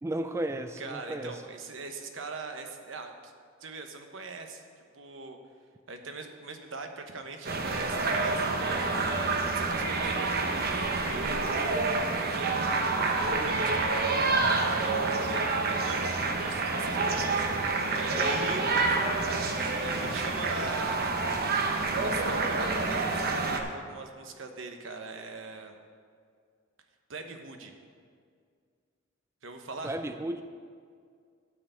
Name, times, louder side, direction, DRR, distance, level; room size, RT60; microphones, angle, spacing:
voice 1, 0.0-1.4 29.8-30.4, right 1 dB, 15° right, 8 dB, 0.3 m, -33 dB
voice 2, 0.8-3.3 3.6-4.6 4.9-5.4 5.9-10.6 11.1-11.7 12.2-14.2 14.6-17.4 17.9-21.2 22.0-25.8 27.1-27.7 29.4-30.0, right 3 dB, 75° right, 5 dB, 1.0 m, -41 dB
sound 1, 7.4-23.6, right 3 dB, 50° right, 1.0 m, -28 dB
12.5 x 4.7 x 7.8 m, 2.1 s
head